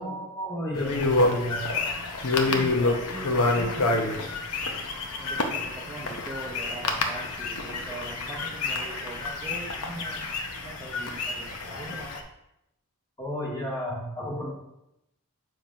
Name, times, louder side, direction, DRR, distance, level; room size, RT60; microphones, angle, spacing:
voice 1, 0.0-1.6 13.2-14.5, equal, 15° left, -5 dB, 2.0 m, -32 dB
sound 1, 0.7-12.2, left 3 dB, 85° left, 0.8 m, -28 dB
voice 2, 2.3-4.3 5.2-10.3 10.6-12.2, right 2 dB, 15° right, -4 dB, 0.6 m, -41 dB
7.2 x 3.1 x 5.0 m, 0.86 s
head